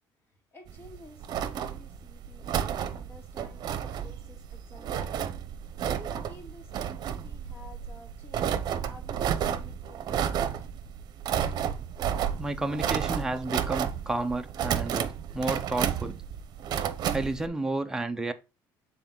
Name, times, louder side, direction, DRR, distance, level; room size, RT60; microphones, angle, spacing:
voice 1, 0.3-5.1 5.8-8.5 8.8-10.7, left 1 dB, 25° left, 2.7 m, -52 dB
sound 1, 0.7-17.5, right 9 dB, 55° right, 0.8 m, -32 dB
voice 2, 12.4-16.2 17.1-18.3, right 2 dB, 5° right, 0.8 m, -31 dB
6.8 x 4.0 x 3.8 m
cardioid pair, 115°, 8 cm